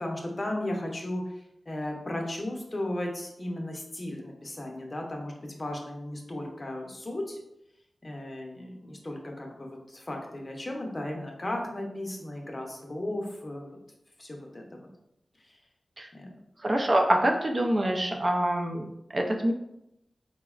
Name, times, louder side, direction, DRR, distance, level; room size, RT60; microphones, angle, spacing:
voice 1, 0.0-7.4 8.0-13.7 14.2-14.8 15.4-15.5 16.1-16.3, left 1 dB, 40° left, 1 dB, 0.6 m, -35 dB
voice 2, 16.6-18.9 19.1-19.5, right 1 dB, 40° right, 2 dB, 0.4 m, -25 dB
3.7 x 2.1 x 2.3 m, 0.82 s
cardioid pair, 55°, 0 cm